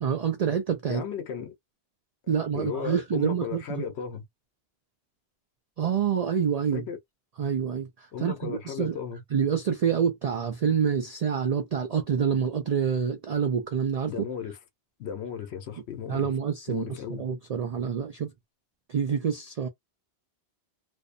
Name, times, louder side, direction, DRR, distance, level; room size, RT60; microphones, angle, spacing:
voice 1, 0.0-1.0 2.3-3.8 5.8-6.8 7.4-7.9 8.2-9.0 9.3-14.1 16.1-18.3 18.9-19.7, right 7 dB, 60° right, 0.4 m, -27 dB
voice 2, 0.9-1.5 2.5-4.2 6.7-7.0 8.1-9.2 14.1-14.6 15.0-16.3 16.7-17.2, left 7 dB, 75° left, 1.0 m, -35 dB
2.5 x 2.1 x 2.4 m
omnidirectional pair, 1.1 m